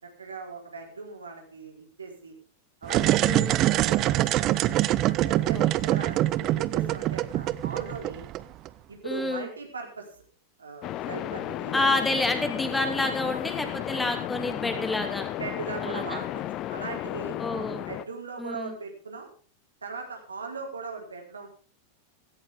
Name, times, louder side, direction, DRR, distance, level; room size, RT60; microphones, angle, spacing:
voice 1, 0.0-2.3 2.8-4.5 5.0-8.3 8.9-10.1 10.6-12.0 15.4-16.4 16.7-17.4 17.9-19.3 19.8-21.5, right 4 dB, 75° right, 2 dB, 4.5 m, -39 dB
sound 1, 2.8-8.7, right 15 dB, 35° right, 0.7 m, -24 dB
voice 2, 3.2-3.7 5.5-5.7 9.0-9.5 11.7-15.3 15.8-16.2 17.4-17.8 18.4-18.7, left 2 dB, 10° left, 5 dB, 2.7 m, -29 dB
sound 2, 10.8-18.0, left 13 dB, 35° left, 0.9 m, -34 dB
16.5 x 16.0 x 3.7 m, 0.37 s
figure-of-eight pair, 90°, 0 cm